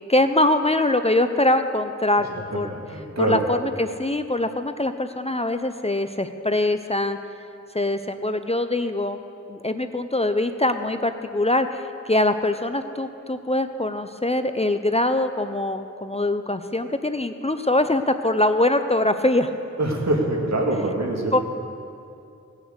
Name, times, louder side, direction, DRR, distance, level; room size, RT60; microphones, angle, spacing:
voice 1, 0.1-2.8 3.2-7.2 7.7-9.2 9.5-19.6 21.3-21.4, left 1 dB, 20° left, 9 dB, 0.6 m, -23 dB
voice 2, 2.9-3.4 19.8-21.3, right 1 dB, 65° right, -1 dB, 2.3 m, -24 dB
18.0 x 6.5 x 8.1 m, 2.6 s
wide cardioid pair, 55°, 29 cm